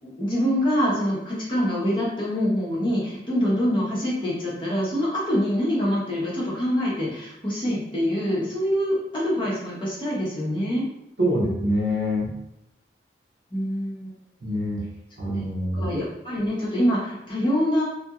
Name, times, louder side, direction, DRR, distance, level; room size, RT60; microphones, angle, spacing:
voice 1, 0.0-10.9 13.5-14.1 15.4-15.5 15.8-17.8, equal, 25° left, -7 dB, 0.9 m, -25 dB
voice 2, 11.2-12.3 14.4-14.8 15.2-15.9, equal, 65° right, -4 dB, 0.9 m, -25 dB
2.8 x 2.6 x 2.4 m, 0.84 s
head